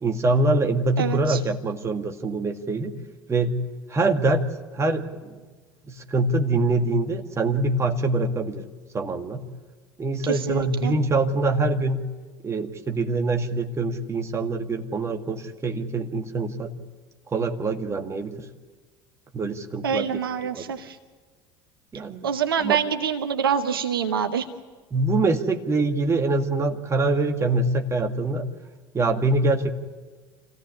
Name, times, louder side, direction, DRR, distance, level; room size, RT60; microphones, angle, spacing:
voice 1, 0.0-2.9 3.3-3.6 3.9-4.4 4.7-5.3 5.9-8.7 8.9-9.4 10.0-12.0 12.4-16.7 17.3-18.4 19.3-20.1 20.5-20.7 21.9-22.3 22.6-22.8 24.9-28.5 28.9-29.7, right 2 dB, 25° right, 4 dB, 2.1 m, -24 dB
voice 2, 1.0-1.4 10.2-10.9 19.8-21.0 22.2-24.5, right 7 dB, 75° right, 9 dB, 1.1 m, -26 dB
27.0 x 16.5 x 9.9 m, 1.4 s
figure-of-eight pair, 70°, 12 cm